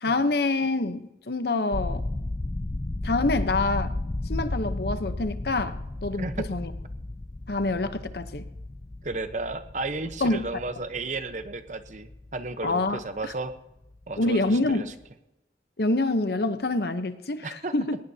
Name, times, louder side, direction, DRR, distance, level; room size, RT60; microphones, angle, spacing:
voice 1, 0.0-2.1 3.0-4.0 4.3-6.7 7.5-8.5 10.2-10.4 12.6-13.0 14.2-14.8 15.8-18.0, left 2 dB, 60° left, 10 dB, 0.8 m, -26 dB
sound 1, 1.7-13.6 13.8-14.2 14.5-14.7, left 2 dB, 25° left, 0.4 m, -34 dB
voice 2, 6.2-6.5 8.1-8.2 9.0-13.5 14.1-14.9 17.4-17.7, right 3 dB, 40° right, 10 dB, 0.9 m, -33 dB
21.0 x 19.0 x 2.8 m, 0.92 s
head